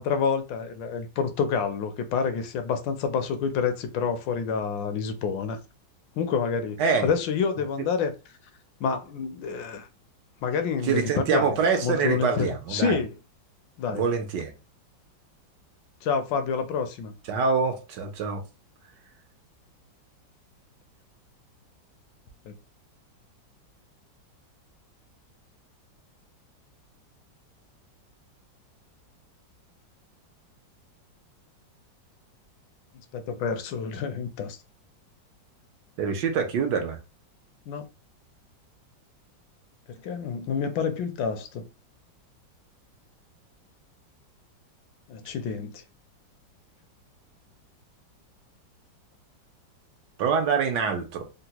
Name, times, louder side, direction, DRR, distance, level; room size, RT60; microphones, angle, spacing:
voice 1, 0.0-5.6 6.2-8.1 8.8-9.9 10.4-11.5 11.8-13.1 13.8-14.0 16.0-17.1 22.5-22.6 33.1-34.6 37.7-37.8 39.9-41.7 45.1-45.8, left 6 dB, 80° left, 1.3 m, -28 dB
voice 2, 10.8-13.0 13.9-14.5 17.3-18.4 36.0-37.0 50.2-51.2, right 5 dB, 75° right, 1.3 m, -25 dB
3.7 x 2.1 x 2.8 m
omnidirectional pair, 2.0 m